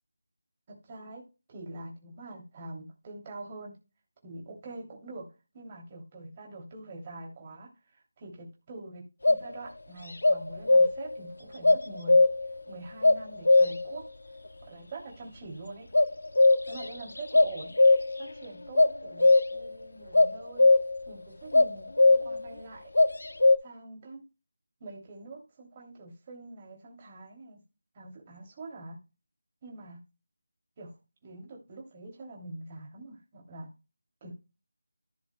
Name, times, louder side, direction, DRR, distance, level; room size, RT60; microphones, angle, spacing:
voice 1, 0.7-1.2 1.5-3.8 4.2-5.3 5.5-12.2 12.7-14.0 14.6-15.9 16.7-17.7 18.2-20.7 21.1-22.8 23.6-24.2 24.8-27.6 27.9-29.0 29.6-30.0 30.8-30.9 31.2-33.7 34.2-34.3, right 2 dB, 25° right, -1 dB, 2.9 m, -44 dB
sound 1, 9.2-9.5 10.2-11.2 11.6-12.6 13.0-14.0 15.9-16.9 17.2-18.3 18.8-19.7 20.1-21.0 21.5-22.5 23.0-23.6, left 2 dB, 80° left, 0.9 m, -20 dB
15.5 x 6.2 x 2.2 m, 0.29 s
figure-of-eight pair, 170°, 0 cm